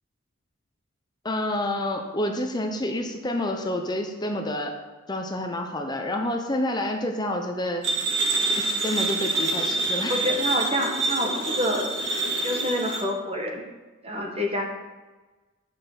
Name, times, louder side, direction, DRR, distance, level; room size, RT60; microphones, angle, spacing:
voice 1, 1.2-4.7 5.1-7.8 8.5-10.2 11.1-11.2, left 1 dB, 20° left, 3 dB, 0.9 m, -28 dB
sound 1, 7.8-13.0, right 3 dB, 60° right, 2.5 m, -26 dB
voice 2, 10.1-11.9 12.4-13.6 14.0-14.7, left 1 dB, 30° right, 1 dB, 1.9 m, -27 dB
10.5 x 5.9 x 6.9 m, 1.2 s
head